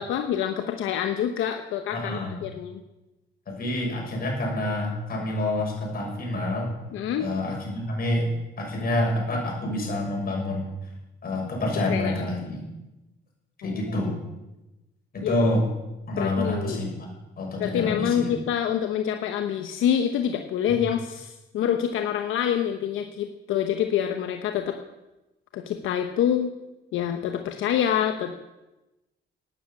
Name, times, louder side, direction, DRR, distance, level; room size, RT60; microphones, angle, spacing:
voice 1, 0.0-2.8 6.9-7.3 11.9-12.1 13.6-13.8 15.2-15.4 16.2-16.8 17.6-24.8 25.5-26.5 26.9-28.4, left 9 dB, 85° left, 6 dB, 1.0 m, -26 dB
voice 2, 1.9-2.4 3.5-6.7 7.2-8.3 8.6-10.7 11.2-12.6 13.6-14.2 15.1-15.6 16.1-17.1 17.4-18.3, left 1 dB, 50° left, -1 dB, 6.6 m, -27 dB
12.0 x 10.0 x 8.5 m, 1.0 s
cardioid pair, 90°, 20 cm